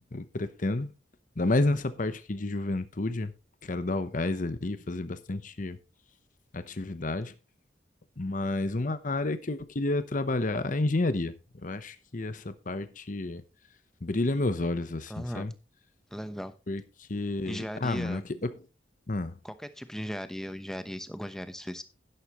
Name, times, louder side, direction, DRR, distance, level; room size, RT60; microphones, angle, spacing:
voice 1, 0.1-0.9 1.4-3.3 3.6-5.8 6.5-7.3 8.2-13.4 14.0-15.5 16.7-18.6 19.1-19.3, left 2 dB, 45° left, 0.9 m, -30 dB
voice 2, 15.1-15.5 16.1-16.5 17.4-18.2 19.4-21.8, equal, 5° left, 0.9 m, -37 dB
11.5 x 10.5 x 3.0 m
head